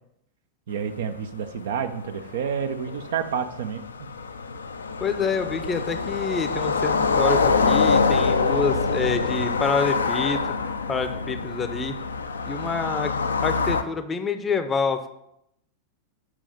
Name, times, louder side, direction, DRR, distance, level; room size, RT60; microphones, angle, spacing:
voice 1, 0.7-3.8, right 7 dB, 60° right, 9 dB, 0.6 m, -29 dB
sound 1, 0.8-0.9 1.3-1.4 1.6-13.8, left 4 dB, 75° left, 0.5 m, -25 dB
voice 2, 5.0-10.6 10.9-12.0 12.5-13.1 13.4-15.1, left 5 dB, 20° left, 9 dB, 0.6 m, -27 dB
7.5 x 4.8 x 5.1 m, 0.78 s
figure-of-eight pair, 90°, 0 cm